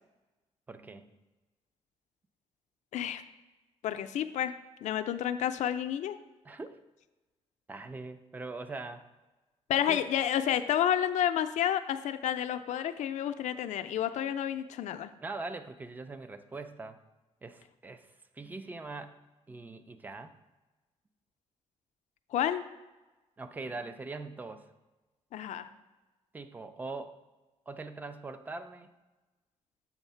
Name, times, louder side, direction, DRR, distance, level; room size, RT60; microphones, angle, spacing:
voice 1, 0.7-1.1 6.4-6.8 7.7-9.1 9.9-10.1 15.2-17.0 17.4-18.1 18.3-19.2 19.5-20.4 23.4-24.7 26.3-27.2 27.7-28.9, right 3 dB, 15° right, 10 dB, 0.3 m, -42 dB
voice 2, 3.8-4.5 4.8-6.2 9.7-15.1 22.3-22.6 25.3-25.7, left 10 dB, 85° left, 9 dB, 0.4 m, -30 dB
7.2 x 3.2 x 5.6 m, 1.1 s
wide cardioid pair, 180°, 12 cm